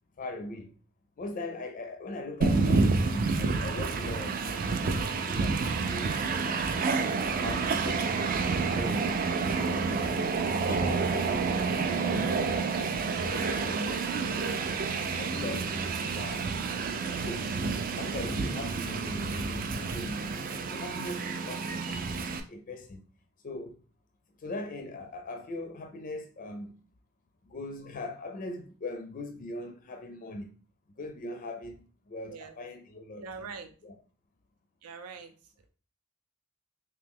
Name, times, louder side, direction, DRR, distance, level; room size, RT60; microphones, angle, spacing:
voice 1, 0.2-0.7 1.2-6.9 7.4-9.1 9.5-14.4 15.2-15.8 16.1-16.5 17.1-17.5 18.0-20.4 20.7-23.1 23.4-23.8 24.4-26.8 27.4-30.5 31.0-33.3 33.8-33.9, left 2 dB, 35° left, 0.4 m, -40 dB
Train, 2.4-22.4, right 4 dB, 40° right, 0.3 m, -29 dB
voice 2, 33.2-33.7 34.8-35.3, right 5 dB, 85° right, 0.6 m, -42 dB
3.1 x 2.8 x 3.5 m
head